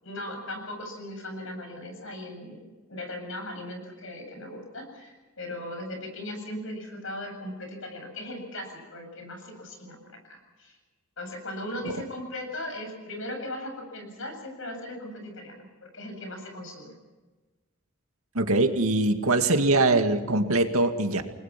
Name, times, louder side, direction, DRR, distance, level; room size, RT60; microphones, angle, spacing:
voice 1, 0.0-2.6 2.9-10.0 10.2-10.8 11.2-16.9, left 1 dB, 65° left, 5 dB, 7.7 m, -38 dB
voice 2, 18.3-21.2, right 2 dB, 85° right, 6 dB, 2.2 m, -22 dB
29.5 x 20.5 x 6.0 m, 1.2 s
head